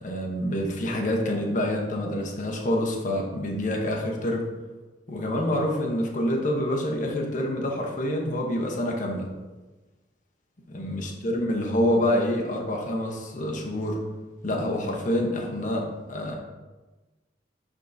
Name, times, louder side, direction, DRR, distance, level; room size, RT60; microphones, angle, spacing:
voice 1, 0.0-4.5 5.1-9.3 10.7-14.0 14.4-16.4, left 1 dB, 45° left, 0 dB, 0.9 m, -27 dB
10.5 x 3.6 x 2.7 m, 1.2 s
head